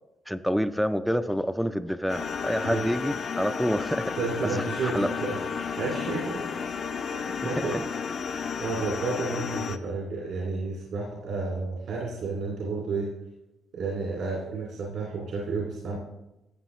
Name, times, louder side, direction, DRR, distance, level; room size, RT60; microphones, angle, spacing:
voice 1, 0.3-4.1 4.4-5.1 7.5-7.8, equal, ahead, 10 dB, 0.4 m, -28 dB
sound 1, 2.1-9.8, left 6 dB, 50° left, 0.6 m, -32 dB
voice 2, 4.2-5.4 5.8-6.4 7.0-7.8 8.3-13.1 13.7-16.0, right 3 dB, 75° right, -3 dB, 2.4 m, -31 dB
13.0 x 8.1 x 3.1 m, 0.96 s
cardioid pair, 90°, 0 cm